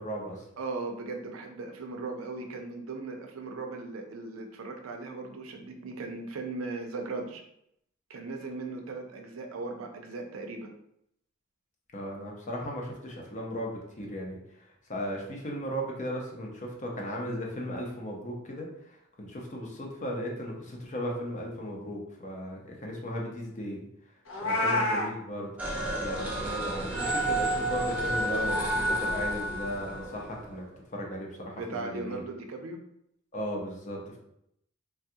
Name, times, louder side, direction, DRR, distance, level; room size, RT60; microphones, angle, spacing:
voice 1, 0.0-0.4 11.9-14.4 14.9-23.8 24.4-25.5 26.0-30.6 30.9-32.2 33.3-34.2, equal, 40° left, -1 dB, 0.7 m, -36 dB
voice 2, 0.6-7.4 8.1-10.7 24.5-24.9 31.6-32.8, right 3 dB, 80° right, 3 dB, 0.5 m, -38 dB
Meow, 24.3-25.1, left 2 dB, 70° left, 0.8 m, -27 dB
sound 1, 25.6-30.5, right 1 dB, 5° right, 0.6 m, -30 dB
3.4 x 2.3 x 2.7 m, 0.75 s
head